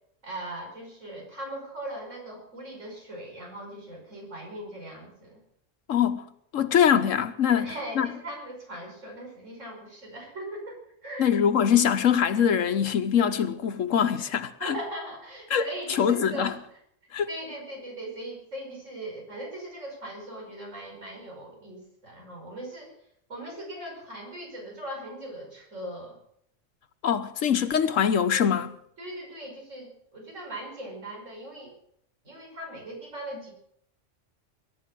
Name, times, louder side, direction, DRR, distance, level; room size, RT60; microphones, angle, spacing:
voice 1, 0.2-5.4 7.6-11.4 14.2-14.3 14.6-16.6 17.3-22.9 23.3-26.2 29.0-31.7 32.2-33.5, right 1 dB, 75° right, 5.6 m, -39 dB
voice 2, 5.9-6.2 6.5-8.1 11.2-14.7 15.5-16.5 17.1-17.3 27.0-28.8, left 8 dB, 90° left, 1.3 m, -23 dB
21.0 x 11.0 x 6.1 m
omnidirectional pair, 1.3 m